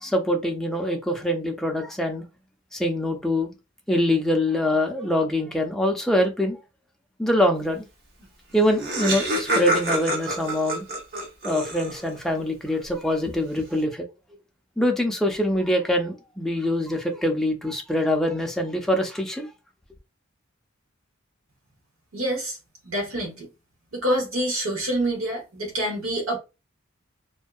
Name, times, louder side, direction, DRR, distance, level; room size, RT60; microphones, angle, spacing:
voice 1, 0.0-2.2 2.7-3.5 3.9-6.6 7.2-7.9 8.5-10.9 11.4-14.1 14.8-19.5, left 1 dB, ahead, 0.4 m, -24 dB
Laughter, 8.2-8.3 8.5-12.2, right 1 dB, 50° right, 0.8 m, -27 dB
voice 2, 22.1-22.6 22.9-23.4 23.9-26.4, right 1 dB, 85° right, 0.9 m, -26 dB
2.6 x 2.2 x 2.3 m
head